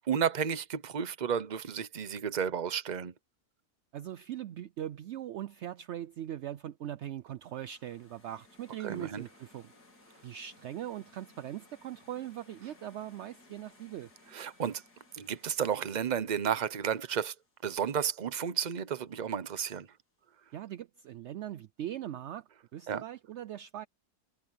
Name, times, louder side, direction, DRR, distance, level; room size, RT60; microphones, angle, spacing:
voice 1, 0.1-3.1 8.8-9.2 14.3-14.8 15.1-17.3 17.6-19.9 22.9-23.0, right 8 dB, 35° right, 0.7 m, -32 dB
voice 2, 3.9-9.7 10.2-14.1 20.5-23.9, right 11 dB, 70° right, 0.6 m, -40 dB
sound 1, 7.4-18.4, left 2 dB, 85° left, 3.7 m, -61 dB
omnidirectional pair, 1.7 m